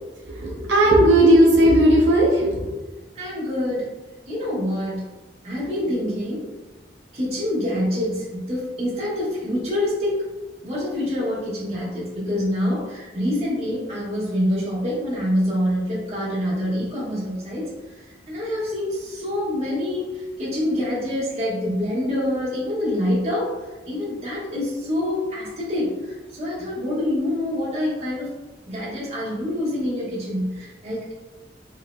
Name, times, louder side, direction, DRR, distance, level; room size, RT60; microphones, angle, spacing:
voice 1, 0.2-2.7, right 1 dB, 85° right, -3 dB, 0.6 m, -16 dB
voice 2, 3.1-3.9 4.3-5.0 5.4-6.5 7.1-10.2 10.6-18.0 18.3-23.5 23.9-28.3 28.7-31.1, left 1 dB, 35° right, -8 dB, 1.5 m, -26 dB
4.4 x 2.8 x 2.2 m, 1.2 s
head